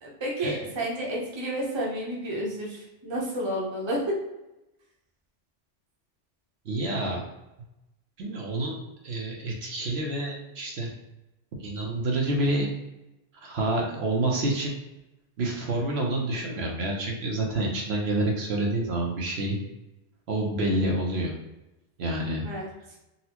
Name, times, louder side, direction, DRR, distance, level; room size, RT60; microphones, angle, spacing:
voice 1, 0.0-4.2 20.7-20.8 22.4-22.7, right 1 dB, 30° right, -3 dB, 0.7 m, -30 dB
voice 2, 6.6-7.2 8.2-8.8 9.0-10.9 11.6-12.7 13.3-14.7 15.4-19.6 20.3-21.3 22.0-22.5, right 1 dB, 65° right, -1 dB, 0.9 m, -28 dB
4.0 x 2.1 x 2.8 m, 0.93 s
omnidirectional pair, 1.2 m